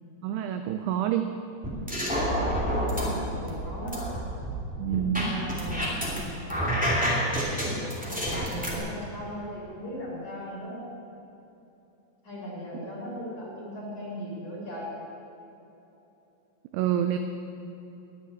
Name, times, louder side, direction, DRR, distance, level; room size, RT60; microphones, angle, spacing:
voice 1, 0.2-1.3 4.8-5.3 16.7-17.2, right 11 dB, 85° right, 7 dB, 2.4 m, -27 dB
sound 1, 1.6-3.1 3.5-6.2 6.5-8.7, equal, 5° right, 1.1 m, -28 dB
voice 2, 2.3-4.0 4.9-5.9 8.1-10.8 12.2-14.9, equal, 35° left, -5 dB, 4.0 m, -38 dB
9.9 x 9.5 x 9.9 m, 2.9 s
omnidirectional pair, 5.2 m